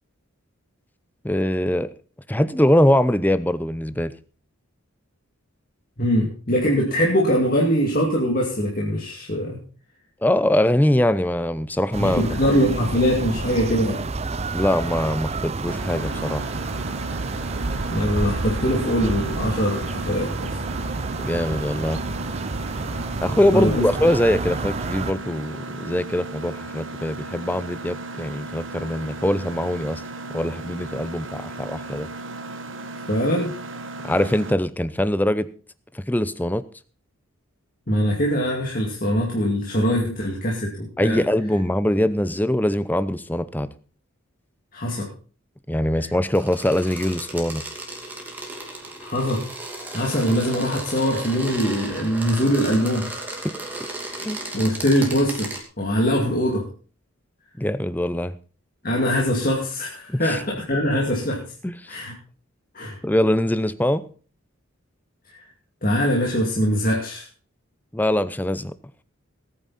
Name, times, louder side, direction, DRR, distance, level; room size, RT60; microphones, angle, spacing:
voice 1, 1.2-1.9 2.3-4.1 10.2-12.2 14.5-16.4 21.2-22.0 23.2-30.0 30.3-32.1 34.0-35.5 35.9-36.6 41.0-43.7 45.7-47.6 53.4-53.5 54.2-54.4 57.6-58.3 60.1-60.4 61.6-62.0 63.0-64.0 67.9-68.7, left 1 dB, 10° left, 15 dB, 0.6 m, -22 dB
voice 2, 6.0-9.6 12.0-14.0 17.9-20.6 23.5-23.8 33.1-33.5 37.9-41.2 44.7-45.1 46.0-46.1 49.0-49.4 49.9-53.1 54.5-56.6 58.8-61.4 61.9-62.1 62.7-63.0 65.3-65.4 65.8-67.2, equal, 45° left, -2 dB, 2.5 m, -22 dB
sound 1, 11.9-25.1, right 3 dB, 30° right, 0.5 m, -29 dB
Mechanisms, 15.7-34.5, right 2 dB, 65° right, 1.6 m, -36 dB
sound 2, 46.4-55.6, right 2 dB, 10° right, 2.7 m, -35 dB
19.5 x 9.2 x 4.1 m, 0.39 s
head